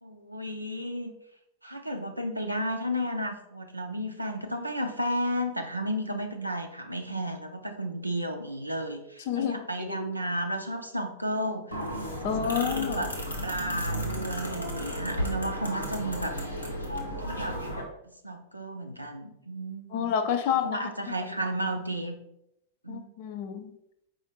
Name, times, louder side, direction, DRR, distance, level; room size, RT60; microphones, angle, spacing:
voice 1, 0.0-1.1 1.6-11.8 12.3-13.1 13.4-16.4 16.9-17.6 18.2-20.1 20.6-22.1 22.8-23.1, equal, 90° right, 4 dB, 0.4 m, -33 dB
voice 2, 9.3-10.0 12.2-13.1 19.9-20.9 22.9-23.7, left 8 dB, 50° left, 8 dB, 0.4 m, -29 dB
sound 1, 11.7-17.8, equal, 80° left, 0.8 m, -33 dB
4.8 x 2.5 x 4.3 m, 0.79 s
figure-of-eight pair, 90°, 0 cm